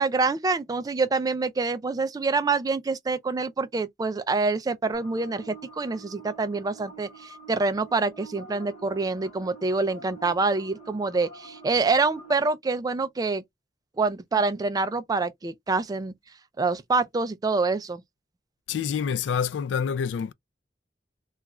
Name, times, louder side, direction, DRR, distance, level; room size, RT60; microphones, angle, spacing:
voice 1, 0.0-13.4 14.0-16.1 16.6-18.0, right 3 dB, 20° right, 0.3 m, -26 dB
sound 1, 4.9-12.3, right 3 dB, 35° left, 0.9 m, -47 dB
voice 2, 18.7-20.3, left 7 dB, 90° left, 0.3 m, -27 dB
3.0 x 2.3 x 2.3 m
head